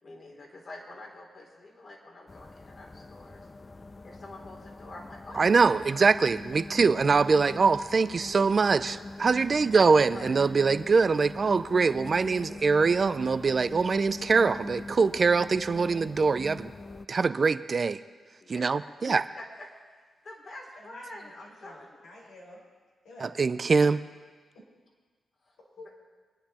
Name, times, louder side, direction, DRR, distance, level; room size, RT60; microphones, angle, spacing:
voice 1, 0.0-3.5 4.0-6.0 6.7-6.8 10.1-10.4 18.4-18.7 19.1-22.0 25.4-25.5, left 2 dB, 55° left, 0 dB, 3.6 m, -47 dB
sound 1, 2.3-17.1, left 3 dB, 35° left, 0.6 m, -43 dB
voice 2, 5.4-16.7 17.1-18.0 18.5-19.2 23.2-24.0, right 4 dB, 50° right, 13 dB, 0.5 m, -23 dB
voice 3, 20.8-22.6 23.0-23.4 25.8-25.9, left 1 dB, 85° left, -4 dB, 4.9 m, -50 dB
24.5 x 9.8 x 4.4 m, 1.5 s
cardioid pair, 55°, 0 cm